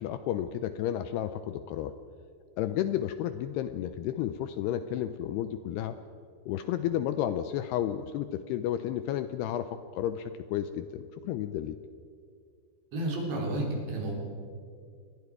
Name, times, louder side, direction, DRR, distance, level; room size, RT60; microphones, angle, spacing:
voice 1, 0.0-2.0 2.6-6.0 6.5-11.8, left 11 dB, 80° left, 10 dB, 2.4 m, -32 dB
voice 2, 12.9-14.2, right 1 dB, 70° right, -1 dB, 5.7 m, -31 dB
28.0 x 21.5 x 4.8 m, 2.4 s
omnidirectional pair, 5.2 m